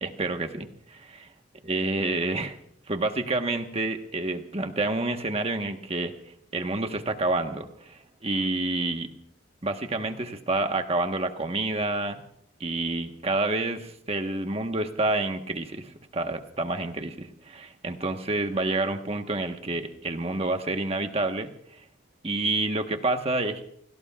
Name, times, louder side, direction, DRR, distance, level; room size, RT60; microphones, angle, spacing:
voice 1, 0.0-1.3 1.7-2.6 2.9-6.1 6.5-9.1 9.6-12.2 12.6-21.5 22.2-23.7, right 2 dB, 30° right, 6 dB, 1.3 m, -28 dB
30.0 x 17.5 x 2.4 m, 0.70 s
head